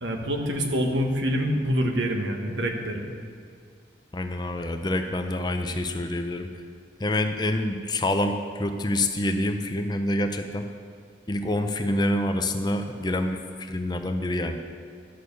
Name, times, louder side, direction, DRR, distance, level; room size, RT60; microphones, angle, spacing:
voice 1, 0.0-3.1, equal, 80° right, 2 dB, 1.3 m, -26 dB
voice 2, 4.1-6.5 7.0-10.7 11.3-14.6, left 1 dB, 20° left, 6 dB, 0.5 m, -27 dB
11.5 x 6.5 x 6.9 m, 2.2 s
head